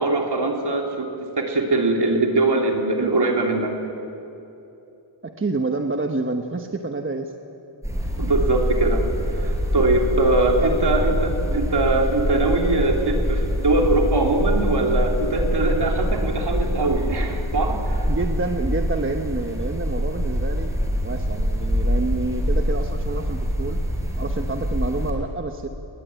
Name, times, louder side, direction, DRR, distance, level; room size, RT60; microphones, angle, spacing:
voice 1, 0.0-3.7 8.2-9.0 9.3-18.1, right 2 dB, 55° right, 1 dB, 3.3 m, -22 dB
voice 2, 5.2-7.3 9.4-9.5 10.6-10.8 11.5-11.6 18.0-23.8 24.2-25.7, right 3 dB, 25° right, 4 dB, 1.1 m, -28 dB
sound 1, 7.8-25.1, equal, 5° right, 4.6 m, -24 dB
21.0 x 20.5 x 9.2 m, 2.8 s
wide cardioid pair, 130°, 49 cm